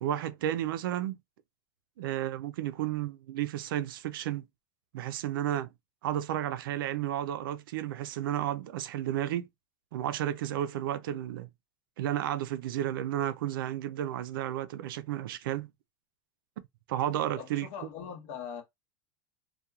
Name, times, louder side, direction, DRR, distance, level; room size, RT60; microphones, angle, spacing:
voice 1, 0.0-1.1 2.0-4.5 4.9-5.7 6.0-9.5 9.9-11.5 12.0-15.7 16.9-17.7, right 12 dB, 90° right, 0.4 m, -32 dB
voice 2, 17.4-18.6, left 7 dB, 50° left, 0.9 m, -41 dB
2.8 x 2.2 x 2.3 m
supercardioid pair, 165°, 11 cm